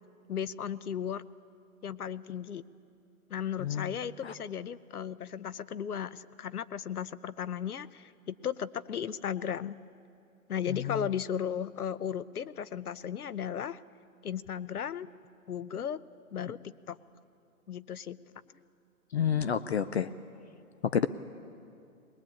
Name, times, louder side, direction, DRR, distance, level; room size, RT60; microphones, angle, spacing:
voice 1, 0.3-1.2 1.8-2.6 3.3-9.8 10.5-13.8 14.2-15.1 15.5-16.0 16.3-17.0 17.7-18.2, left 8 dB, 85° left, 17 dB, 0.9 m, -35 dB
voice 2, 3.6-3.9 4.2-4.3 10.7-11.0 19.1-20.1 20.8-21.1, left 8 dB, 50° left, 13 dB, 0.6 m, -29 dB
21.0 x 21.0 x 8.6 m, 2.5 s
hypercardioid pair, 160°, 44 cm